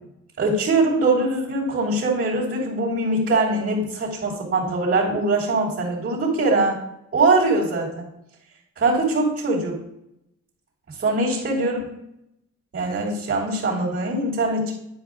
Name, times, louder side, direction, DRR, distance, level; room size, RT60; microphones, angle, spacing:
voice 1, 0.4-6.8 7.1-8.0 8.8-9.8 10.9-11.8 12.7-14.7, right 2 dB, 40° right, -6 dB, 3.1 m, -22 dB
10.5 x 4.9 x 3.8 m, 0.81 s
cardioid pair, 90°, 30 cm